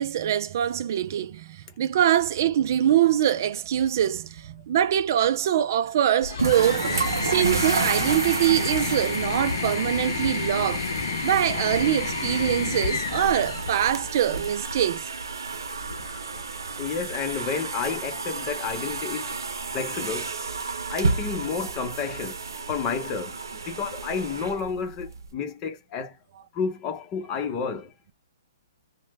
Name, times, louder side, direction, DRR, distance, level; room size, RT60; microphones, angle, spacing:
voice 1, 0.0-6.8 7.2-10.8 11.2-15.1, right 10 dB, 55° right, 0.4 m, -23 dB
sound 1, 6.2-14.6 15.8-16.5, left 6 dB, 65° left, 0.6 m, -31 dB
sound 2, 6.4-25.3, right 4 dB, 90° right, 0.7 m, -31 dB
voice 2, 16.8-19.4 19.7-20.3 20.9-22.4 22.7-26.2 26.5-28.1, left 5 dB, 25° left, 0.8 m, -31 dB
3.1 x 2.2 x 3.1 m
hypercardioid pair, 140°, 2 cm